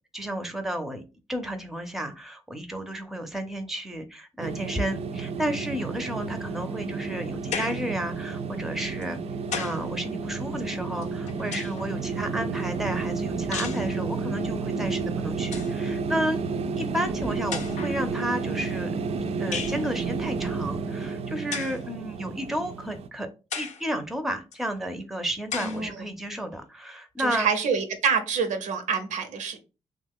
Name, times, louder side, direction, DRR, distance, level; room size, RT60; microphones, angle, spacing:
voice 1, 0.1-1.0 1.3-9.2 9.6-16.4 16.8-18.9 19.4-23.3 23.6-27.5, equal, 5° right, 0.6 m, -32 dB
sound 1, 4.4-23.1, right 4 dB, 55° right, 0.4 m, -31 dB
sound 2, 7.5-7.9 9.0-9.9 11.0-11.9 13.5-13.9 15.0-15.1 15.4-15.8 16.8-16.9 17.5-18.0 19.5-19.8 21.5-21.8 22.5-22.6 23.5-23.9 24.5-24.6 25.5-25.8, left 6 dB, 75° left, 0.6 m, -34 dB
voice 2, 25.6-26.0 27.2-29.6, right 6 dB, 90° right, 0.7 m, -27 dB
2.9 x 2.2 x 3.5 m
cardioid pair, 100°, 12 cm